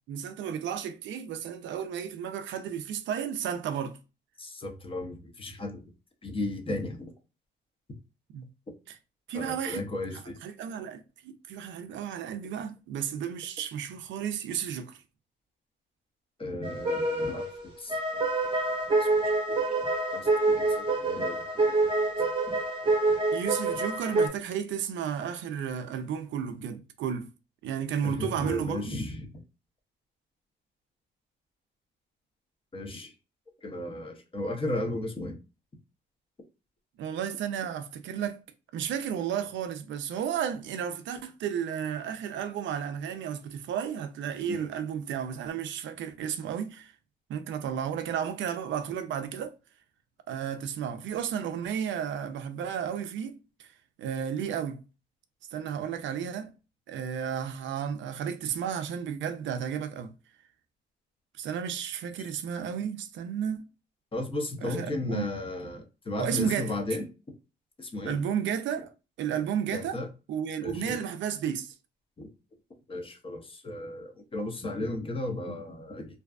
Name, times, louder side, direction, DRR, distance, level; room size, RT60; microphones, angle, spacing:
voice 1, 0.1-4.0 8.3-8.4 8.9-9.0 9.3-15.0 23.3-27.3 27.6-29.0 37.0-38.4 38.7-46.9 47.3-49.5 50.3-53.7 54.0-54.8 55.5-56.5 56.9-60.1 61.4-63.7 64.6-65.3 66.2-66.7 68.1-68.9 69.2-70.0 70.3-71.7, right 8 dB, 70° right, 0.4 m, -33 dB
voice 2, 4.4-5.8 6.2-7.1 9.3-10.4 16.4-18.2 19.0-19.3 19.7-19.8 20.1-21.9 28.0-29.3 32.7-33.1 33.6-35.3 44.5-44.6 64.1-67.1 67.8-68.2 69.7-70.1 70.6-71.0 72.2-72.3 72.9-76.1, left 2 dB, 25° left, 0.7 m, -35 dB
sound 1, 16.6-24.3, right 2 dB, 25° right, 0.9 m, -27 dB
2.6 x 2.3 x 2.3 m
cardioid pair, 90°, 20 cm